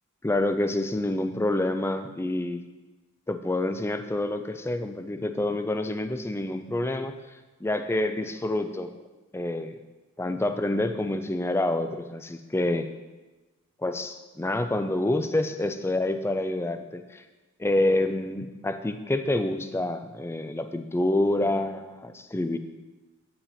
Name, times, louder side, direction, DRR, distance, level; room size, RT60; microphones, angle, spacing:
voice 1, 0.2-2.6 3.3-7.2 7.6-8.9 9.3-9.7 10.2-12.9 13.8-17.2 17.6-22.6, left 1 dB, 10° left, 8 dB, 0.4 m, -27 dB
8.7 x 5.7 x 4.2 m, 1.2 s
head